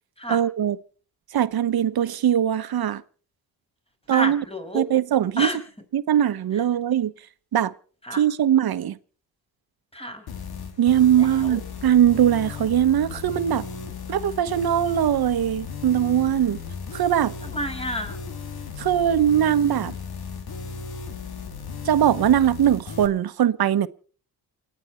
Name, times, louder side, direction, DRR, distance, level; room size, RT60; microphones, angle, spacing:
voice 1, 0.3-0.8 1.3-3.0 4.1-4.4 4.7-5.5 5.9-7.1 7.5-7.7 8.1-9.0 10.8-13.7 14.1-16.6 16.9-17.3 18.8-19.9 21.8-23.9, right 10 dB, 60° right, 1.2 m, -21 dB
voice 2, 4.1-4.8 5.4-5.6 8.0-8.2 9.9-10.3 11.2-11.6 17.4-18.2, equal, 15° left, 5.7 m, -30 dB
sound 1, 10.3-23.1, left 5 dB, 60° left, 2.8 m, -36 dB
29.0 x 9.8 x 4.4 m
cardioid pair, 105°, 41 cm